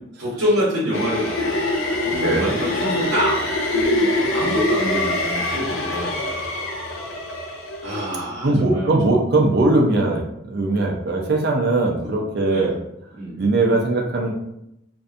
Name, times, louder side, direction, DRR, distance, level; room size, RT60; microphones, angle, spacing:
voice 1, 0.2-6.5 7.8-9.2 12.0-12.1 12.4-12.7 13.1-13.4, equal, 70° right, -7 dB, 0.8 m, -27 dB
sound 1, 0.9-8.2, left 1 dB, 70° left, 0.5 m, -24 dB
voice 2, 2.1-2.5 8.4-12.7 13.4-14.3, right 2 dB, 50° right, 0 dB, 0.5 m, -20 dB
2.6 x 2.2 x 2.5 m, 0.80 s
head